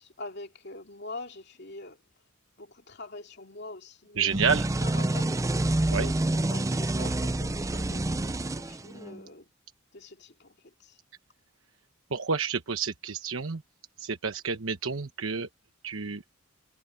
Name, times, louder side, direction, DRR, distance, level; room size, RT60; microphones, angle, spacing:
voice 1, 0.0-2.0 2.6-4.3 4.8-5.3 5.9-9.5 9.9-11.0, left 2 dB, 55° left, 2.6 m, -44 dB
voice 2, 4.2-4.7 5.9-6.1 12.1-13.6 14.0-15.5 15.8-16.2, right 5 dB, 85° right, 1.1 m, -29 dB
sound 1, 4.3-9.2, right 2 dB, 15° right, 0.4 m, -28 dB
head